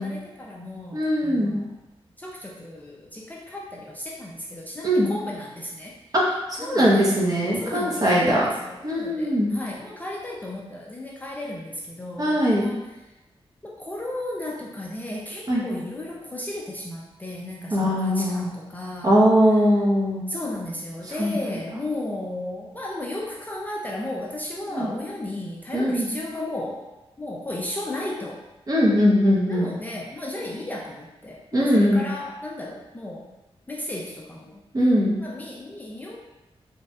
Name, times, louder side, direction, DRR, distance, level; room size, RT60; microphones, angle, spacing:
voice 1, 0.0-1.8 2.2-5.9 6.6-7.2 7.6-12.9 13.6-19.3 20.3-26.9 27.2-28.4 29.5-33.3 33.7-34.6 35.2-36.2, left 1 dB, 15° left, -3 dB, 0.3 m, -34 dB
voice 2, 0.9-1.6 4.8-5.1 6.1-6.2 6.5-8.5 8.8-9.5 12.2-12.7 15.5-15.6 17.7-18.5 19.0-20.2 21.2-21.4 24.7-24.9 25.7-26.1 28.7-29.7 31.5-32.0 34.7-35.2, equal, 35° right, -4 dB, 0.7 m, -20 dB
3.0 x 2.6 x 2.2 m, 0.99 s
wide cardioid pair, 115°, 10 cm